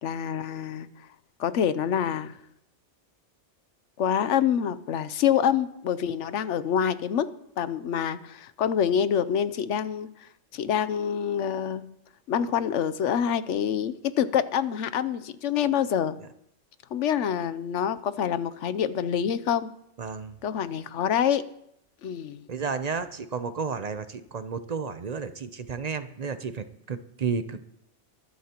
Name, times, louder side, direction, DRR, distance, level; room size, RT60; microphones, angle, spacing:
voice 1, 0.0-0.9 1.4-2.3 4.0-7.3 7.6-10.1 10.5-11.8 12.3-16.2 16.9-19.7 20.4-21.4 22.0-22.4, left 8 dB, 80° left, 14 dB, 1.0 m, -26 dB
voice 2, 20.0-20.4 22.5-27.7, right 5 dB, 45° right, 10 dB, 0.6 m, -32 dB
22.5 x 11.0 x 2.9 m, 0.78 s
omnidirectional pair, 1.2 m